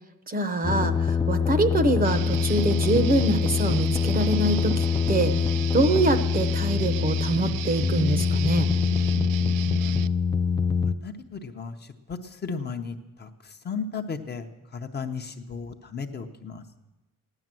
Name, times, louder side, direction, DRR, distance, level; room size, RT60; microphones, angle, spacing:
voice 1, 0.3-5.4 5.7-8.7, right 2 dB, 25° right, 9 dB, 0.8 m, -24 dB
sound 1, 0.6-10.9, left 6 dB, 15° left, 0.4 m, -24 dB
Guitar, 2.0-10.1, right 14 dB, 80° right, 0.5 m, -35 dB
voice 2, 10.8-16.6, left 5 dB, 30° left, 5 dB, 0.8 m, -35 dB
16.0 x 11.0 x 7.6 m, 1.1 s
cardioid pair, 175°, 33 cm